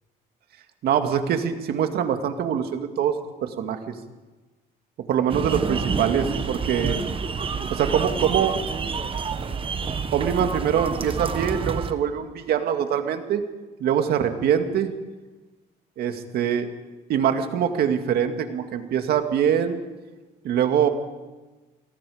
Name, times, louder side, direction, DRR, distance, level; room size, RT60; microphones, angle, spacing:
voice 1, 0.8-3.9 5.1-7.0 7.7-8.6 10.1-13.4 13.8-14.9 16.0-16.7 17.1-19.8 20.4-20.9, right 8 dB, 70° right, 6 dB, 2.1 m, -23 dB
sound 1, 5.3-11.9, right 5 dB, 30° right, 1.4 m, -28 dB
28.5 x 19.0 x 5.1 m, 1.2 s
cardioid pair, 110°, 17 cm